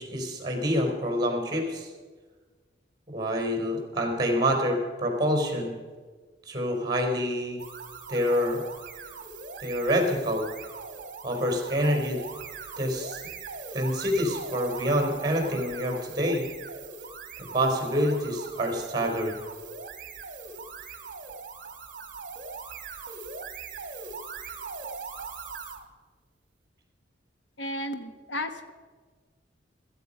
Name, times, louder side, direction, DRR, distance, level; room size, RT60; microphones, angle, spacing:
voice 1, 0.0-1.9 3.1-5.8 6.5-7.6 8.1-8.6 9.6-10.5 11.2-12.2 12.8-13.2 13.7-16.4 17.5-19.4, equal, 25° right, 3 dB, 4.2 m, -27 dB
sound 1, 7.6-25.8, right 4 dB, 50° right, 1.6 m, -41 dB
voice 2, 27.6-28.7, left 1 dB, 85° left, 8 dB, 1.3 m, -33 dB
16.0 x 14.0 x 5.5 m, 1.4 s
head